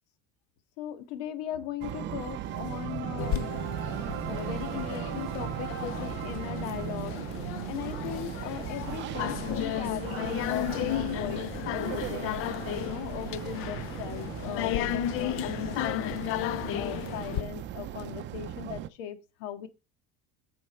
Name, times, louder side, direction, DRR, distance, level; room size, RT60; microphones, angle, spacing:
voice 1, 0.8-3.5 4.3-7.2 7.4-12.4 12.7-19.7, left 10 dB, 90° left, 1.9 m, -38 dB
sound 1, 1.8-18.9, right 11 dB, 30° right, 0.5 m, -37 dB
sound 2, 3.2-17.4, left 13 dB, 35° left, 0.4 m, -34 dB
8.6 x 6.4 x 4.4 m
cardioid pair, 180°, 37 cm